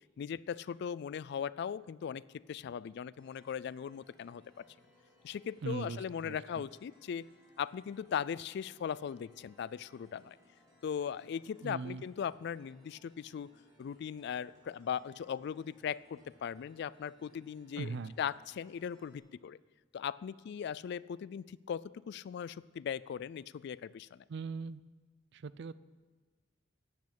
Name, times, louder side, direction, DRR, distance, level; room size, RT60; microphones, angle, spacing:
voice 1, 0.2-4.6 5.2-7.3 7.6-10.4 10.8-13.5 13.8-19.6 19.9-24.2, left 8 dB, 60° left, 20 dB, 0.3 m, -39 dB
sound 1, 3.2-19.2, equal, 20° right, 3.8 m, -66 dB
voice 2, 5.6-6.4 11.6-12.0 17.8-18.1 24.3-24.8 25.3-25.7, right 4 dB, 65° right, 17 dB, 0.4 m, -40 dB
10.5 x 8.6 x 8.3 m, 1.4 s
head